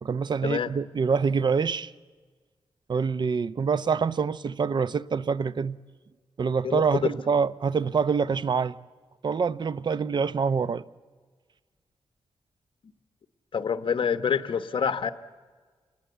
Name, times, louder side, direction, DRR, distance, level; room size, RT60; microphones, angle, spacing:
voice 1, 0.0-1.9 2.9-5.8 6.4-8.8 9.2-10.8, right 5 dB, 50° right, 0.7 m, -26 dB
voice 2, 6.6-7.1 13.5-15.1, left 7 dB, 65° left, 1.1 m, -26 dB
27.0 x 20.0 x 8.1 m
wide cardioid pair, 100°, 9 cm